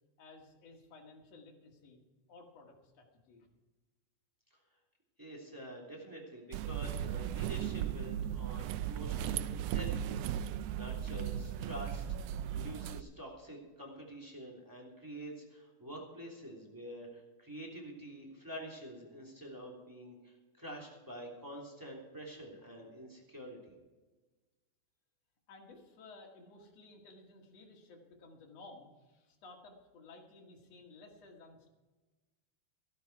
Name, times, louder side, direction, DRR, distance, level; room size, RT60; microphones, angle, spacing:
voice 1, 0.2-2.0 2.3-3.5 25.5-31.7, left 3 dB, 60° left, 0 dB, 3.1 m, -55 dB
voice 2, 5.2-23.7, right 1 dB, 5° right, -1 dB, 2.7 m, -47 dB
sound 1, 6.5-13.0, right 10 dB, 85° right, 1.4 m, -36 dB
13.5 x 12.0 x 4.7 m, 1.2 s
omnidirectional pair, 3.4 m